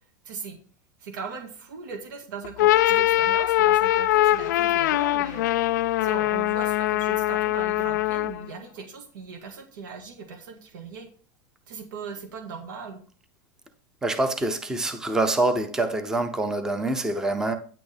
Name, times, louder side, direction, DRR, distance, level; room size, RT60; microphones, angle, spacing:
voice 1, 0.3-0.6 1.0-5.4 6.0-11.1 11.7-13.0, right 5 dB, 85° right, 1.8 m, -39 dB
sound 1, 2.4-8.5, left 15 dB, 65° left, 0.4 m, -22 dB
voice 2, 14.0-17.6, right 2 dB, 5° right, 0.6 m, -25 dB
9.5 x 8.4 x 3.4 m
supercardioid pair, 175°, 10 cm